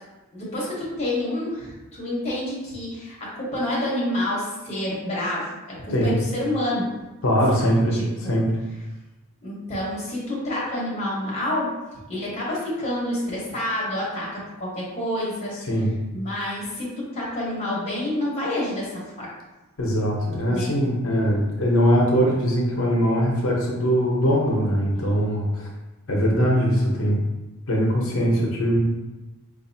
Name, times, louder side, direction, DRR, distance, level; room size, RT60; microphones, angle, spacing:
voice 1, 0.3-6.8 7.6-8.4 9.4-11.7 12.1-15.5 16.1-19.3 20.5-20.7 24.9-25.1, left 1 dB, 30° left, -6 dB, 1.1 m, -28 dB
voice 2, 7.2-8.0 8.3-8.5 15.7-15.9 19.8-25.7 26.1-27.2 27.7-28.8, equal, 70° left, -2 dB, 0.8 m, -21 dB
4.2 x 2.6 x 2.7 m, 1.1 s
head